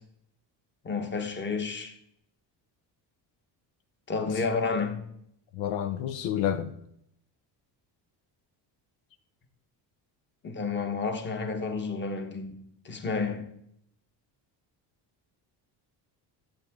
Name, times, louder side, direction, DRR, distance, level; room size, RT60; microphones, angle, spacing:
voice 1, 0.8-1.9 4.1-5.0 10.4-13.5, left 4 dB, 25° left, 1.1 m, -31 dB
voice 2, 5.5-6.7, left 10 dB, 85° left, 0.8 m, -29 dB
11.5 x 7.6 x 3.6 m
cardioid pair, 160°, 43 cm